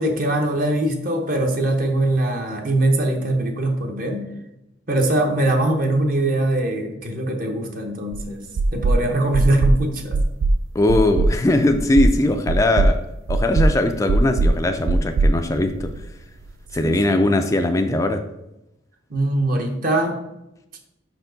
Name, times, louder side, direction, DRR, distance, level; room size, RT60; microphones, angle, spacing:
voice 1, 0.0-4.3 4.9-8.4 8.7-10.2 16.8-17.2 19.1-20.2, right 1 dB, 45° right, 3 dB, 0.9 m, -22 dB
sound 1, 8.1-8.2 8.6-9.0 9.3-9.8 10.1-10.6 10.9-11.3 11.7-12.1 12.5-12.9 13.3-13.7 14.1-14.5 14.9-16.1, right 2 dB, 85° right, 0.3 m, -18 dB
voice 2, 10.7-13.0 13.3-15.9 16.7-18.2, left 1 dB, 15° left, 5 dB, 0.3 m, -20 dB
5.5 x 4.4 x 3.9 m, 0.90 s
head